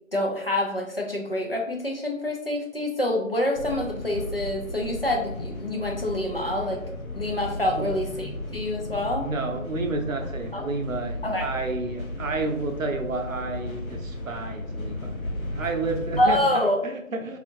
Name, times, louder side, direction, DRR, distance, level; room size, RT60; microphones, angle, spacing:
voice 1, 0.1-6.8 7.1-9.3 10.5-10.7 11.2-11.5 16.2-16.8, left 1 dB, 45° left, 0 dB, 0.5 m, -26 dB
sound 1, 3.5-16.4, left 1 dB, 85° left, 1.0 m, -35 dB
voice 2, 9.2-15.2 15.6-17.4, right 3 dB, 75° right, 3 dB, 0.7 m, -30 dB
2.8 x 2.4 x 2.6 m, 0.78 s
figure-of-eight pair, 170°, 41 cm